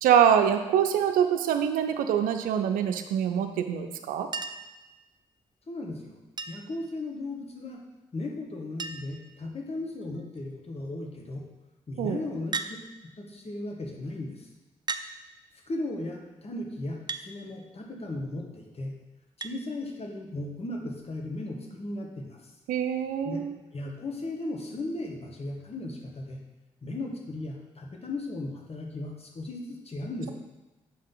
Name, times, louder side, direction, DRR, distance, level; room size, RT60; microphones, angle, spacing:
voice 1, 0.0-4.3 12.0-12.2 22.7-23.5, right 9 dB, 80° right, 7 dB, 0.5 m, -24 dB
Chink clink, 4.3-4.8 6.4-6.8 8.2-8.3 8.5-8.6 8.8-9.2 10.0-10.4 12.5-12.8 13.8-13.9 14.9-15.1 17.1-17.3 19.4-19.6 21.0-21.1, right 4 dB, 30° right, 0.5 m, -35 dB
voice 2, 5.7-6.2 6.5-7.8 8.1-11.5 11.9-12.6 13.2-14.5 15.7-19.0 19.4-22.4 23.2-23.4 23.7-26.4 26.8-30.3, left 2 dB, 45° left, 1 dB, 1.7 m, -36 dB
7.6 x 5.4 x 3.9 m, 1.1 s
hypercardioid pair, 40°, 14 cm